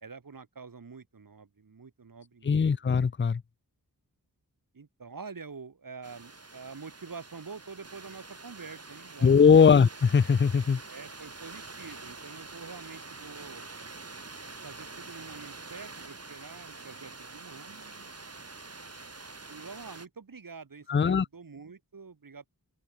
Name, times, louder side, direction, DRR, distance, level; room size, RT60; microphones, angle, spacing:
voice 1, 0.0-2.8 4.7-9.3 10.9-13.7 14.6-18.1 19.5-22.5, right 5 dB, 60° right, 1.8 m, -46 dB
voice 2, 2.4-3.4 9.2-10.8 20.9-21.3, left 6 dB, 30° left, 0.5 m, -20 dB
sound 1, 6.0-20.1, right 3 dB, 40° right, 2.6 m, -46 dB
open air
wide cardioid pair, 75°, 38 cm